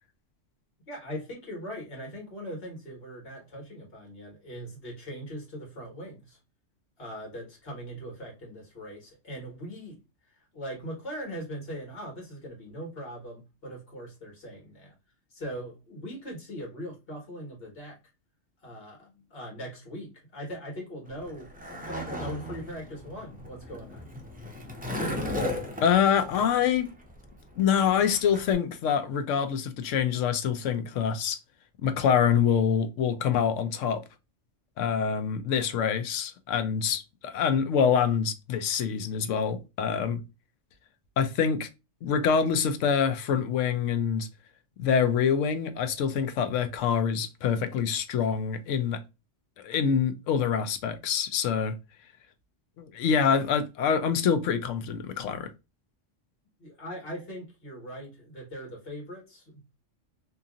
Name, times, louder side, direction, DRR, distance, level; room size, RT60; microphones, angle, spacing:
voice 1, 0.9-6.4 7.0-10.0 10.5-14.9 15.3-18.0 18.6-21.5 21.8-24.1 56.6-59.8, equal, 50° left, 1.7 m, -40 dB
Skateboard, 21.1-28.5, left 1 dB, 10° right, 0.4 m, -36 dB
voice 2, 25.8-26.9 27.6-31.4 31.8-34.0 34.8-40.2 41.2-41.7 42.0-44.3 44.8-49.0 49.6-51.7 52.8-55.5, left 7 dB, 85° left, 0.9 m, -25 dB
2.8 x 2.7 x 2.4 m
omnidirectional pair, 1.3 m